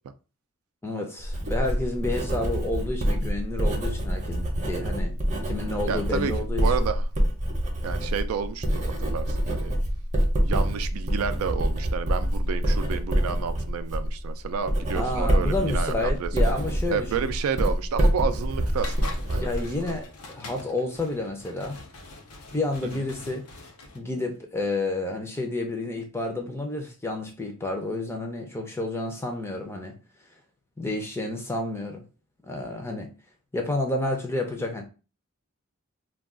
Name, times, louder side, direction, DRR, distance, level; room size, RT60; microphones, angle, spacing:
voice 1, 0.8-5.2 5.4-6.9 14.9-17.3 19.4-21.8 22.5-23.5 23.9-29.9 30.8-32.0 32.4-33.1 33.5-34.8, left 2 dB, 10° left, 0.4 m, -30 dB
Writing, 1.2-20.0, equal, 35° right, 0.6 m, -26 dB
voice 2, 5.9-6.3 6.6-7.1 7.8-9.7 10.4-16.3 16.9-19.5 19.8-20.0 22.9-23.0, right 6 dB, 80° right, 0.3 m, -30 dB
sound 1, 18.7-24.0, left 3 dB, 90° left, 0.6 m, -43 dB
2.3 x 2.3 x 3.6 m
head